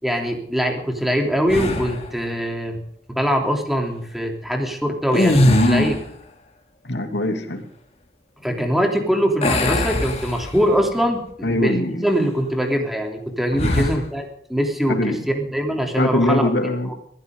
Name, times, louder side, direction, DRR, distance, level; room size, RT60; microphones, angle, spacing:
voice 1, 0.0-2.8 3.1-5.9 8.4-14.2 14.5-16.5 16.9-17.0, equal, ahead, 2 dB, 3.3 m, -22 dB
sound 1, 1.5-2.1 5.0-6.1 9.4-10.8 11.3-11.5 13.5-14.0, left 1 dB, 40° left, 2.9 m, -21 dB
voice 2, 5.4-6.0 6.8-7.7 11.4-12.0 13.5-13.9 14.9-15.3 16.0-16.9, left 1 dB, 80° left, 5 dB, 2.7 m, -22 dB
22.0 x 16.0 x 3.9 m, 0.66 s
head